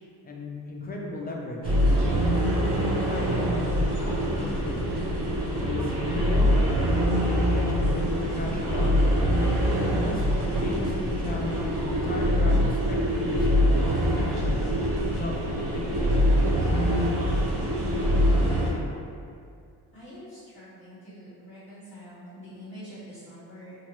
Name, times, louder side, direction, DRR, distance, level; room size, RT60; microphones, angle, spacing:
voice 1, 0.2-4.9 5.6-6.5 6.9-8.9 9.9-14.8 15.2-16.2, left 1 dB, 25° left, -1 dB, 0.4 m, -35 dB
sound 1, 1.6-18.7, equal, 75° right, 0.9 m, -24 dB
voice 2, 19.9-23.8, equal, 30° right, -17 dB, 1.5 m, -45 dB
2.8 x 2.7 x 3.0 m, 2.4 s
cardioid pair, 110°, 41 cm